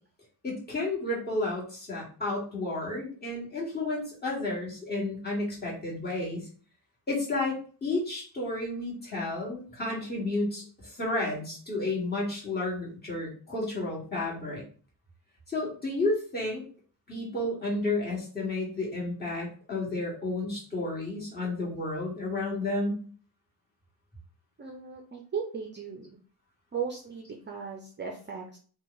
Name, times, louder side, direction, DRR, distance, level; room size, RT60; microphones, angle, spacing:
voice 1, 0.4-6.5 7.1-14.6 15.5-16.6 17.1-23.0, left 2 dB, 25° left, -5 dB, 1.8 m, -31 dB
voice 2, 24.6-26.2 26.7-28.6, right 6 dB, 25° right, 1 dB, 0.5 m, -37 dB
4.6 x 2.3 x 4.0 m, 0.41 s
wide cardioid pair, 165°, 40 cm